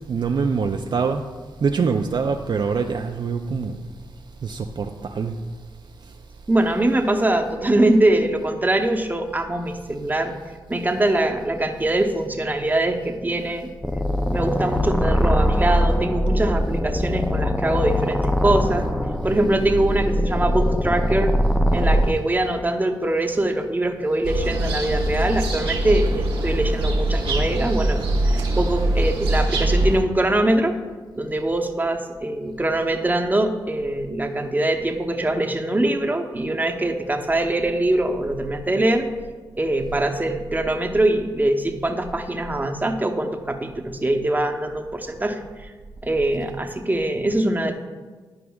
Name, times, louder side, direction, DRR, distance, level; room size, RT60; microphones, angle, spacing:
voice 1, 0.1-1.3 1.6-3.8 4.4-5.4, right 5 dB, 55° right, 0.4 m, -24 dB
voice 2, 6.5-10.3 10.7-13.7 14.3-18.9 19.2-21.3 21.7-30.7 31.2-39.1 39.5-45.7 46.0-47.7, right 1 dB, 20° right, 0.9 m, -23 dB
sound 1, 13.8-22.1, equal, 5° left, 0.5 m, -22 dB
sound 2, 24.2-30.0, right 1 dB, 75° right, 1.2 m, -22 dB
11.0 x 4.9 x 2.4 m
supercardioid pair, 40°, 10 cm